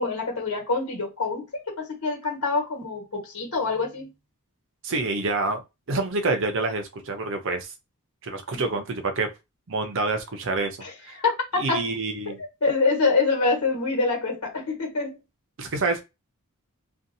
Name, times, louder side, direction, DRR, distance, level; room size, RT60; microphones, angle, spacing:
voice 1, 0.0-4.1 8.5-8.6 10.8-11.3 11.7-11.8 12.3-12.4 12.6-15.2, left 3 dB, 75° left, 1.4 m, -26 dB
voice 2, 4.8-5.6 5.9-7.7 8.2-9.3 9.7-10.8 11.1-11.2 11.6-12.4 15.6-16.0, right 3 dB, 60° right, 0.6 m, -27 dB
2.6 x 2.4 x 2.7 m
head